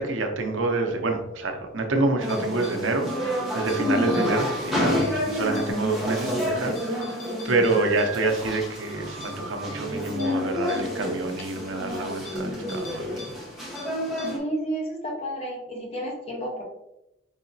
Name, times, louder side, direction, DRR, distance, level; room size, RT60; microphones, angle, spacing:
voice 1, 0.0-13.4, right 2 dB, 85° right, 4 dB, 0.7 m, -27 dB
sound 1, 2.2-14.4, left 1 dB, ahead, 1.1 m, -29 dB
sound 2, 2.3-2.8 3.5-3.8 4.1-4.2 5.0-5.2 5.5-5.6 6.0-6.1 6.7-8.1 8.4-8.5 8.9-9.0 9.2-9.3 9.7-9.8 10.2-10.3 10.7-10.8 11.4-11.5 12.2-12.3 12.7-13.3 13.5-13.8 14.2-14.3, left 3 dB, 70° left, 0.6 m, -42 dB
Wind instrument woodwind instrument, 3.0-6.1 6.5-7.2 7.7-9.9, right 3 dB, 20° right, 0.6 m, -40 dB
voice 2, 14.3-16.6, right 1 dB, 30° left, -1 dB, 0.9 m, -31 dB
4.8 x 2.9 x 2.7 m, 0.89 s
head